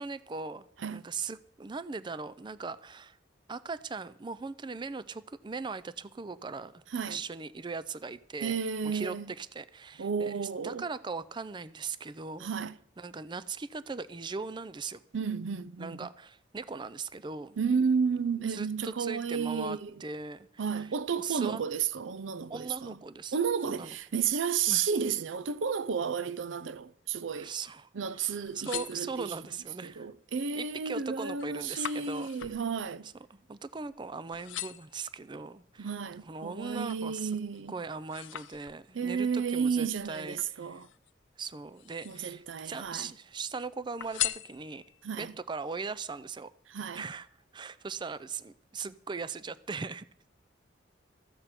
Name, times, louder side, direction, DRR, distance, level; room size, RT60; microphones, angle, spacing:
voice 1, 0.0-0.7 0.9-3.2 3.5-8.6 8.8-10.3 10.6-12.5 13.0-15.0 15.8-17.6 18.5-20.9 21.2-21.6 22.5-23.4 23.6-23.9 24.7-24.9 27.4-30.1 30.6-32.3 33.3-36.0 36.2-37.3 37.7-40.8 41.4-44.8 45.2-46.5 46.9-47.3 47.5-50.3, right 4 dB, 25° right, 0.4 m, -39 dB
voice 2, 8.4-9.3 10.0-10.9 12.4-12.8 15.1-16.1 17.6-20.0 20.6-23.0 23.3-27.5 27.9-29.3 29.8-33.1 35.8-37.7 38.9-40.9 42.0-43.1 45.0-45.3 46.7-47.1, right 6 dB, 85° right, 0.5 m, -32 dB
sound 1, 28.3-29.6 30.1-30.6 30.9-34.0 34.3-35.0 35.6-37.1 37.5-39.1 40.0-41.1 41.7-42.5 42.8-43.5 44.0-45.1 45.6-45.7, left 13 dB, 85° left, 0.5 m, -40 dB
14.0 x 8.9 x 5.8 m
head